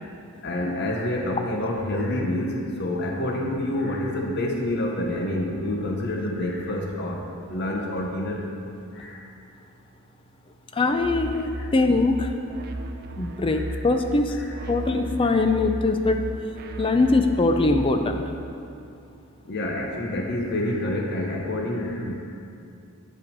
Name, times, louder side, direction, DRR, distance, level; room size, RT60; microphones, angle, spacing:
voice 1, 0.4-7.2 7.5-8.4 8.9-9.2 11.5-11.7 13.5-13.8 14.4-14.6 15.2-15.4 16.8-17.0 19.4-22.1, left 1 dB, 50° left, 0 dB, 0.8 m, -28 dB
voice 2, 10.7-12.3 13.2-14.4 14.7-16.2 16.8-18.2, left 3 dB, 25° left, 6 dB, 0.4 m, -22 dB
sound 1, 10.9-18.2, right 1 dB, 45° right, 0.5 m, -35 dB
9.0 x 5.6 x 5.2 m, 2.6 s
head